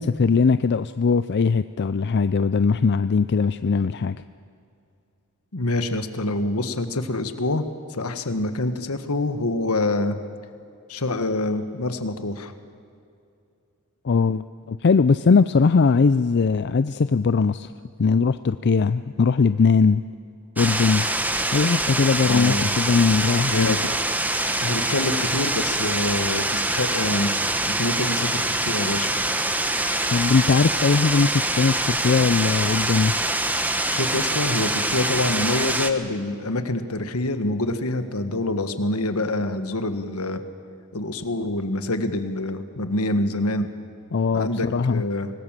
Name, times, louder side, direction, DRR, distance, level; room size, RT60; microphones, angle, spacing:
voice 1, 0.0-4.2 14.0-17.7 18.0-20.0 20.6-21.0 21.5-23.8 30.1-33.1 44.1-45.0, left 5 dB, 50° left, 13 dB, 0.5 m, -20 dB
voice 2, 5.5-7.6 7.9-10.2 10.9-12.5 22.2-22.7 23.5-23.8 24.6-29.1 33.9-40.4 40.9-43.7 44.3-45.3, left 2 dB, 75° left, 9 dB, 1.6 m, -26 dB
sound 1, 20.6-35.9, right 1 dB, 10° right, 1.2 m, -24 dB
25.5 x 19.0 x 7.5 m, 2.5 s
head